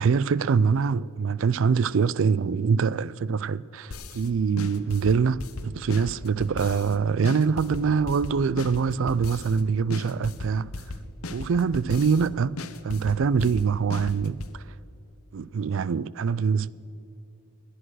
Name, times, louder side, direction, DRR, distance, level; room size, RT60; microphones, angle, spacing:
voice 1, 0.0-10.7 11.3-14.6 15.3-16.7, right 5 dB, 65° right, 0.4 m, -24 dB
Decapitator Beat, 3.9-4.3 4.6-6.9 7.2-9.6 9.9-12.3 12.6-14.6, left 2 dB, 85° left, 0.9 m, -36 dB
20.5 x 10.0 x 6.3 m
head